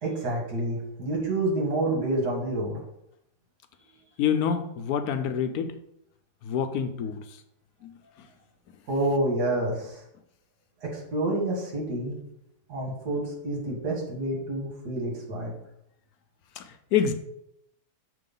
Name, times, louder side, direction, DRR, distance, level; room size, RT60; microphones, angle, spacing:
voice 1, 0.0-2.8 8.9-10.0 10.8-12.1 12.7-15.5, right 2 dB, 80° right, -2 dB, 2.4 m, -28 dB
voice 2, 4.2-5.7 6.4-7.2 7.8-7.9 16.6-17.1, left 8 dB, 75° left, 8 dB, 1.0 m, -27 dB
6.9 x 3.0 x 5.3 m, 0.78 s
omnidirectional pair, 1.7 m